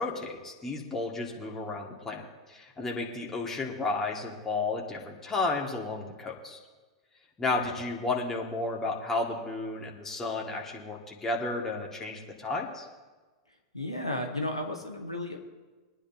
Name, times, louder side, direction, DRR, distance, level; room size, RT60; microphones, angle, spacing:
voice 1, 0.0-6.6 7.4-12.9, left 3 dB, 15° left, -1 dB, 2.3 m, -32 dB
voice 2, 13.7-15.4, left 1 dB, 90° left, 1 dB, 1.7 m, -33 dB
23.0 x 9.9 x 3.0 m, 1.3 s
figure-of-eight pair, 95°, 3 cm